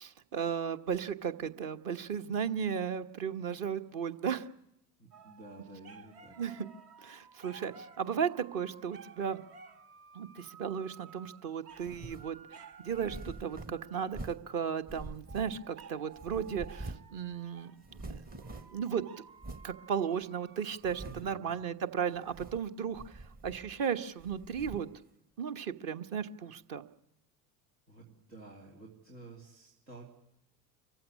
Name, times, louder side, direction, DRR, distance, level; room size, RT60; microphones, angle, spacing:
voice 1, 0.0-4.5 6.4-6.7 7.0-9.4 10.1-18.2 18.7-19.2 19.6-24.9 25.4-26.8, right 7 dB, 45° right, 9 dB, 1.2 m, -35 dB
voice 2, 5.0-6.4 21.0-21.5 27.9-30.1, right 2 dB, 80° right, -3 dB, 3.1 m, -51 dB
sound 1, 5.1-14.4 15.3-21.2, right 5 dB, 60° right, 1.7 m, -55 dB
sound 2, 11.8-12.3 12.9-14.5 14.9-15.8 16.2-17.2 17.4-17.5 17.8-18.9 19.4-19.7 20.2-20.3 20.8-21.4 22.2-22.7 22.9-23.8 24.2-25.0, right 2 dB, 20° right, 0.9 m, -46 dB
24.5 x 15.0 x 9.8 m, 0.79 s
figure-of-eight pair, 70°, 50 cm